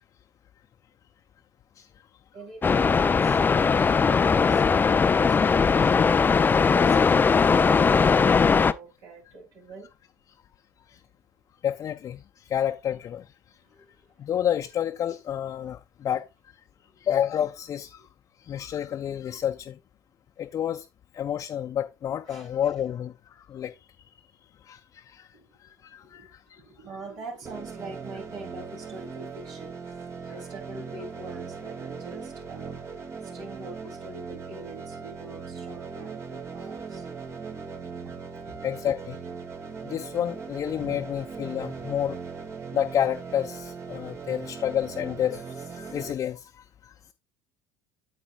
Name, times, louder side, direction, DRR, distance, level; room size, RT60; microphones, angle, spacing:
voice 1, 2.3-6.2 6.7-9.9 13.7-13.9 22.3-22.5 25.3-25.4 26.0-26.3 26.5-32.8 33.2-37.0 37.7-38.5, right 3 dB, 60° right, 3.9 m, -44 dB
sound 1, 2.6-8.7, left 5 dB, 25° left, 0.6 m, -20 dB
voice 2, 11.6-13.3 14.2-16.2 17.0-18.0 18.4-19.8 20.4-20.8 21.1-23.7 24.6-25.3 25.6-26.6 38.6-39.2 39.8-42.2 42.7-46.9, left 10 dB, 45° left, 0.9 m, -30 dB
sound 2, 27.4-46.1, right 5 dB, 35° right, 2.0 m, -39 dB
8.8 x 8.3 x 2.5 m
hypercardioid pair, 65°, 8 cm